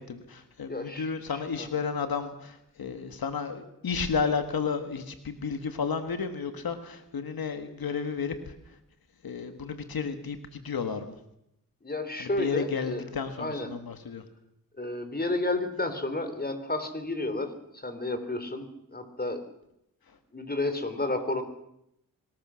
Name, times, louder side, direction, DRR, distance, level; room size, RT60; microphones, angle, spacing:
voice 1, 0.0-8.8 9.2-11.2 12.2-14.2, left 5 dB, 85° left, 8 dB, 1.8 m, -32 dB
voice 2, 0.7-1.7 11.8-13.0 13.4-13.7 14.8-19.4 20.3-21.4, left 2 dB, 25° left, 9 dB, 3.7 m, -31 dB
25.0 x 20.0 x 6.4 m, 0.79 s
cardioid pair, 65°, 35 cm